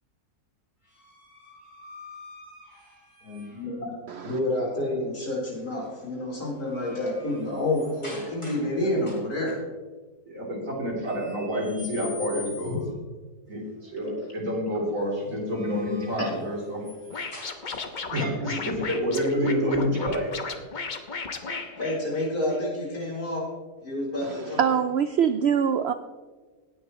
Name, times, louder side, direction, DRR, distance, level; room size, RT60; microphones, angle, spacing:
sound 1, 0.9-3.8 5.5-5.9 6.3-8.7 9.0-9.5 11.1-13.0 15.3-18.1, left 2 dB, 20° left, 4.0 m, -45 dB
voice 1, 3.2-3.9 4.2-9.6 12.7-12.8 16.2-16.3 21.8-23.5 23.8-24.7, left 1 dB, 70° left, -4 dB, 4.6 m, -29 dB
voice 2, 4.1-4.4 24.2-25.9, right 7 dB, 75° right, 10 dB, 0.6 m, -24 dB
voice 3, 10.3-12.8 13.5-16.8 18.1-20.3, equal, 55° right, -3 dB, 3.8 m, -28 dB
Scratching (performance technique), 17.1-22.6, left 4 dB, 40° left, 0.8 m, -35 dB
18.0 x 9.5 x 3.1 m, 1.3 s
omnidirectional pair, 1.7 m